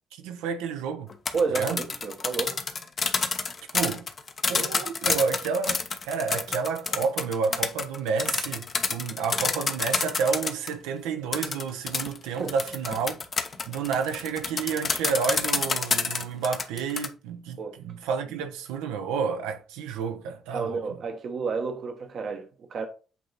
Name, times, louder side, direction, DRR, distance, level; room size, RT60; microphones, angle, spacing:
voice 1, 0.1-1.1 1.5-1.9 3.7-4.1 4.5-13.2 13.6-20.8, right 5 dB, 85° right, 0.8 m, -30 dB
sound 1, 1.1-10.7 11.3-17.1, left 4 dB, 50° left, 1.0 m, -28 dB
voice 2, 1.3-2.6 12.4-12.5 17.6-17.8 20.5-22.9, right 5 dB, 60° right, 1.1 m, -30 dB
8.3 x 2.9 x 4.1 m
hypercardioid pair, 50°, 0 cm